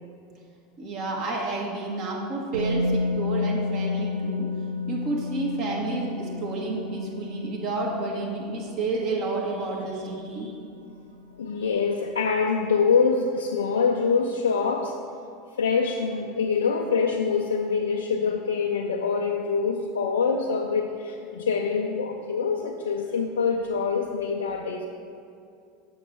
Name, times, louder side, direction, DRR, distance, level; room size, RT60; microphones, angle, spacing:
voice 1, 0.8-4.5 4.9-10.5 11.6-11.7, right 3 dB, 50° right, -2 dB, 1.5 m, -30 dB
Musical instrument, 2.5-10.4 10.7-10.9, left 3 dB, 80° right, 0.7 m, -31 dB
voice 2, 11.4-15.0 15.6-24.9, left 5 dB, 75° left, 1 dB, 0.4 m, -25 dB
7.1 x 5.9 x 4.3 m, 2.5 s
figure-of-eight pair, 80°, 0 cm